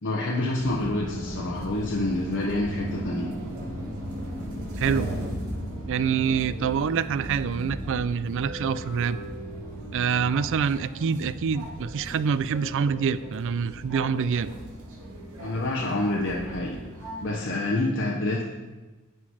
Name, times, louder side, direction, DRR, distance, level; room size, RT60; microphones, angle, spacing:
voice 1, 0.0-3.3 15.4-16.8 17.2-18.4, left 2 dB, 60° left, -1 dB, 0.9 m, -27 dB
sound 1, 0.6-17.3, equal, 80° right, 2.3 m, -36 dB
voice 2, 4.8-5.1 5.9-9.2 9.9-14.5, right 6 dB, 60° right, 16 dB, 0.4 m, -26 dB
10.0 x 5.9 x 4.8 m, 1.2 s
head